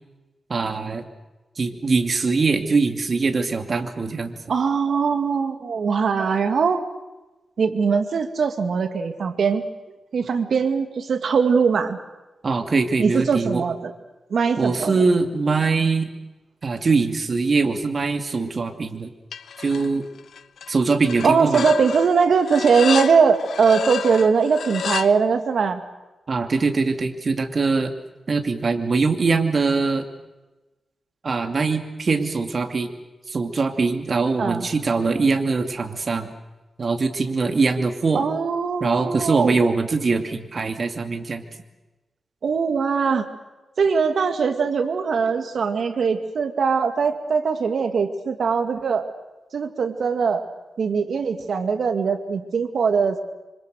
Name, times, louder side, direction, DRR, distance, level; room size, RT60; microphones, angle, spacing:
voice 1, 0.5-1.0 1.6-4.3 12.4-13.6 14.6-16.1 16.6-19.1 19.6-20.1 20.7-21.6 26.3-27.9 28.3-30.1 31.2-32.9 33.3-36.3 36.8-38.2 38.8-41.4, right 4 dB, 50° right, 6 dB, 2.6 m, -22 dB
voice 2, 4.5-6.8 7.6-9.7 10.1-12.0 13.0-13.9 14.3-15.0 21.2-25.8 34.4-34.7 38.1-39.6 42.4-43.3 43.8-49.1 49.5-50.4 50.8-53.2, right 5 dB, 70° right, 7 dB, 2.3 m, -21 dB
sound 1, 19.3-19.9 20.2-20.7 21.1-25.1, left 7 dB, 80° left, 0.8 m, -29 dB
26.0 x 26.0 x 6.5 m, 1.1 s
cardioid pair, 90°, 0 cm